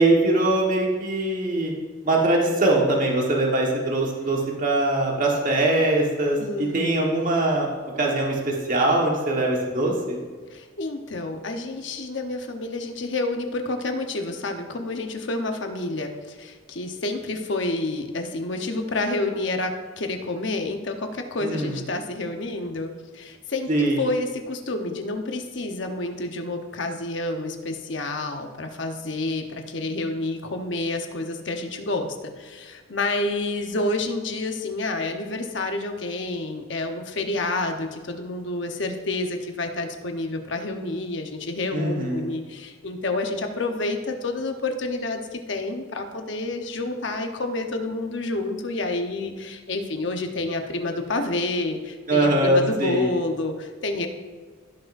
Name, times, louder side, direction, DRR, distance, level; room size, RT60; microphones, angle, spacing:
voice 1, 0.0-1.7 2.0-7.7 8.0-10.2 21.4-21.7 23.7-24.0 41.7-42.3 52.1-53.1, right 2 dB, 40° right, -1 dB, 1.4 m, -22 dB
voice 2, 6.4-7.2 10.5-54.1, left 2 dB, 65° left, 5 dB, 1.0 m, -29 dB
16.0 x 6.4 x 2.6 m, 1.5 s
head